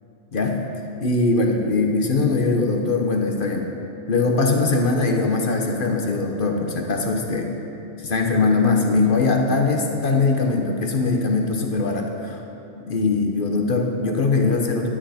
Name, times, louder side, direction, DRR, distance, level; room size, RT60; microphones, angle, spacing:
voice 1, 1.0-3.7 4.1-7.5 8.0-12.4 12.8-14.9, left 3 dB, 45° left, 2 dB, 1.1 m, -21 dB
12.5 x 10.0 x 4.3 m, 2.8 s
omnidirectional pair, 1.4 m